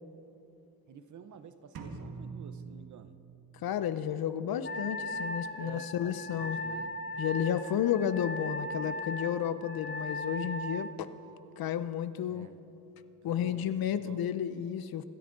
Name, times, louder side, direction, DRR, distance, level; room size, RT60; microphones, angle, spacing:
voice 1, 0.9-3.2 5.6-6.9 12.3-12.6 13.3-14.2, right 7 dB, 55° right, 11 dB, 0.8 m, -50 dB
sound 1, 1.7-3.6, right 4 dB, 90° right, 2.0 m, -44 dB
voice 2, 3.6-6.6 7.2-11.1 11.6-12.5 13.2-15.0, left 9 dB, 80° left, 13 dB, 0.8 m, -32 dB
Wind instrument woodwind instrument, 4.6-11.0, left 1 dB, 30° left, 0.7 m, -38 dB
26.5 x 13.5 x 3.9 m, 2.9 s
wide cardioid pair, 175°, 36 cm